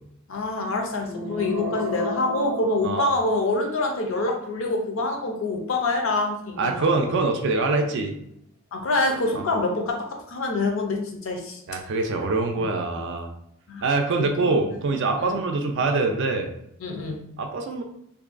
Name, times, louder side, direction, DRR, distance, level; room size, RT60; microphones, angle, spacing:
voice 1, 0.3-7.1 8.7-11.6 12.6-12.7 13.7-13.8 14.4-14.6 15.2-15.4 16.8-17.2, left 2 dB, 65° left, 2 dB, 0.5 m, -26 dB
sound 1, 1.0-3.7, left 1 dB, ahead, 0.5 m, -32 dB
voice 2, 6.6-8.1 9.3-9.4 11.7-13.3 13.8-16.5 17.4-17.8, right 3 dB, 55° right, 4 dB, 0.4 m, -24 dB
2.6 x 2.2 x 2.4 m, 0.76 s
head